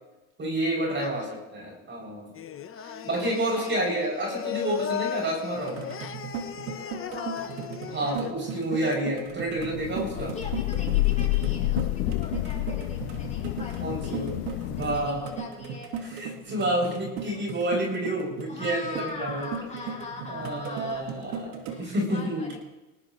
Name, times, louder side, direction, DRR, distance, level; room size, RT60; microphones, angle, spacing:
voice 1, 0.4-1.3 1.5-2.3 2.8-5.8 7.9-10.3 13.8-15.2 16.1-19.5 20.3-21.5 21.8-22.5, right 1 dB, 35° right, -2 dB, 7.5 m, -29 dB
voice 2, 1.0-1.4 2.8-4.4 6.9-7.6 10.1-14.2 14.6-15.9 18.5-22.6, left 3 dB, 20° left, -3 dB, 6.8 m, -42 dB
Singing, 2.3-8.9, left 9 dB, 40° left, 1.2 m, -36 dB
sound 1, 5.6-21.9, right 6 dB, 85° right, 2.1 m, -37 dB
Thunder / Rain, 9.6-15.3, left 18 dB, 90° left, 0.6 m, -29 dB
19.5 x 19.0 x 3.3 m, 1.1 s
supercardioid pair, 95°, 33 cm